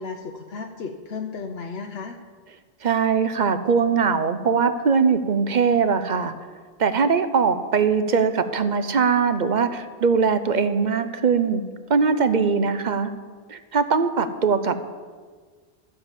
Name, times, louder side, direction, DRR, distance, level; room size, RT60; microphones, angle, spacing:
voice 1, 0.0-2.2, left 4 dB, 75° left, 3 dB, 1.0 m, -34 dB
voice 2, 2.8-6.3 6.8-11.6 11.9-13.1 13.5-14.8, right 5 dB, 50° right, 10 dB, 0.8 m, -21 dB
13.5 x 7.0 x 7.3 m, 1.5 s
omnidirectional pair, 1.1 m